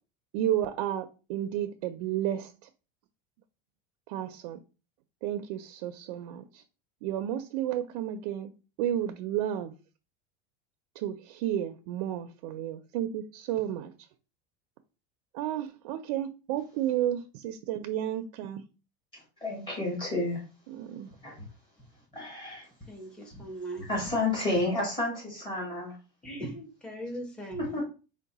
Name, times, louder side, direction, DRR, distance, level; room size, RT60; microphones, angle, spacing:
voice 1, 0.3-2.5 4.1-4.6 5.2-6.6 7.0-8.5 8.8-9.7 11.0-13.9 15.3-18.7 20.7-21.1, right 11 dB, 65° right, 0.4 m, -32 dB
voice 2, 19.1-20.4 21.2-21.4 22.1-22.7 23.9-26.0 27.7-27.8, left 2 dB, 25° left, 1.7 m, -31 dB
voice 3, 22.9-23.9 26.2-27.8, right 1 dB, 5° left, 0.7 m, -39 dB
4.6 x 2.1 x 4.0 m
supercardioid pair, 165°, 21 cm